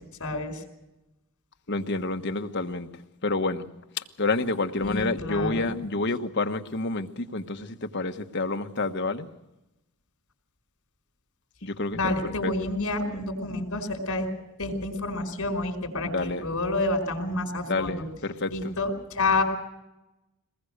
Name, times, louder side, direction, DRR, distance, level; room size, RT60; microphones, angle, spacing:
voice 1, 0.2-0.5 4.8-5.7 11.9-14.3 14.6-18.0 18.5-19.4, left 2 dB, 75° left, 4.9 m, -29 dB
voice 2, 1.7-2.9 3.2-3.7 4.0-9.3 11.6-12.5 16.0-16.5 17.7-18.7, left 3 dB, 55° left, 1.3 m, -29 dB
23.0 x 20.5 x 6.6 m
head